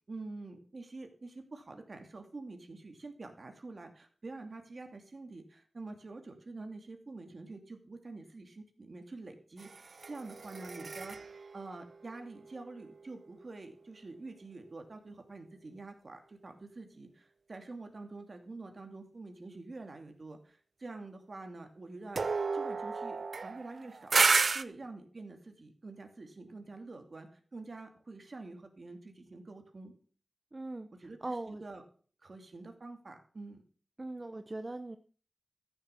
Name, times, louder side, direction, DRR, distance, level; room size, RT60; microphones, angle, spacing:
voice 1, 0.0-22.2 22.5-29.9 31.0-31.8 32.2-33.6, right 3 dB, 55° right, 5 dB, 2.6 m, -47 dB
sound 1, 9.6-13.1 22.2-24.6, right 4 dB, 70° right, 0.6 m, -32 dB
voice 2, 30.5-31.6 34.0-35.0, right 2 dB, 30° right, 9 dB, 0.7 m, -40 dB
14.0 x 6.9 x 6.9 m, 0.43 s
wide cardioid pair, 95°, 0 cm